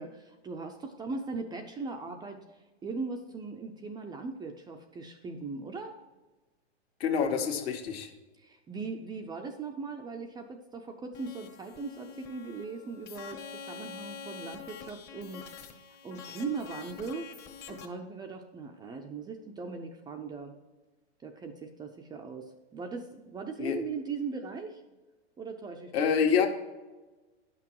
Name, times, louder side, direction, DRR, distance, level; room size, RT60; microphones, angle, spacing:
voice 1, 0.0-6.0 8.4-15.8 16.0-17.3 17.7-20.5 21.2-24.8 25.4-26.1, right 4 dB, 10° right, 4 dB, 0.5 m, -39 dB
voice 2, 7.0-8.1 23.6-23.8 25.9-26.5, left 7 dB, 60° left, 3 dB, 1.7 m, -26 dB
sound 1, 11.1-17.8, left 6 dB, 30° left, 1.1 m, -46 dB
10.0 x 6.1 x 4.6 m, 1.2 s
hypercardioid pair, 120°, 34 cm